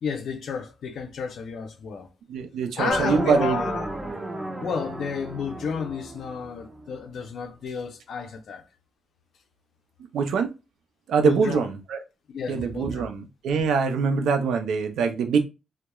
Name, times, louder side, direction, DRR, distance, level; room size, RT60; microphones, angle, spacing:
voice 1, 0.0-2.1 2.8-4.0 4.6-8.6 11.2-11.7 12.3-13.1, left 6 dB, 55° left, 0.4 m, -31 dB
voice 2, 2.3-3.6 10.1-10.5 11.1-12.0 12.5-15.4, right 5 dB, 80° right, 0.4 m, -24 dB
sound 1, 2.9-6.9, right 2 dB, 15° right, 0.4 m, -33 dB
2.2 x 2.0 x 2.9 m
wide cardioid pair, 175°, 0 cm